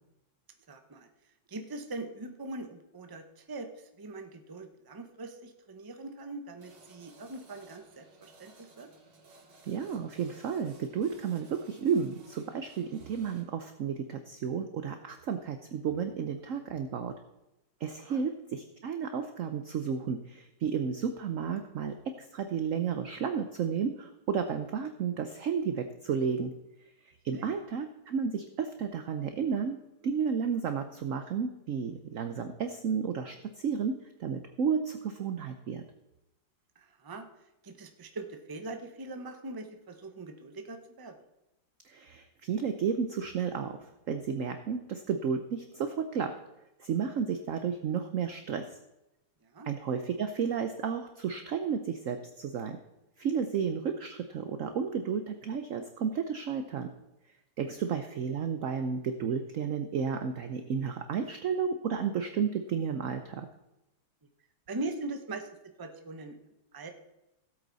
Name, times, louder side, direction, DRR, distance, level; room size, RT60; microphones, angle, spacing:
voice 1, 0.7-1.1 1.5-8.9 18.0-18.2 27.3-27.5 36.8-37.3 37.6-41.2 49.4-49.7 57.7-57.8 64.7-65.5 65.8-66.4 66.7-66.9, right 2 dB, 20° right, 6 dB, 0.6 m, -41 dB
sound 1, 6.6-13.4, right 2 dB, 90° right, 2.7 m, -58 dB
voice 2, 9.7-17.1 17.8-26.5 27.2-29.8 30.0-35.8 41.9-43.8 44.1-46.3 46.8-48.8 49.7-52.8 53.2-56.9 57.6-63.5, right 6 dB, 60° right, 8 dB, 0.8 m, -32 dB
16.5 x 8.3 x 4.0 m, 0.93 s
omnidirectional pair, 2.1 m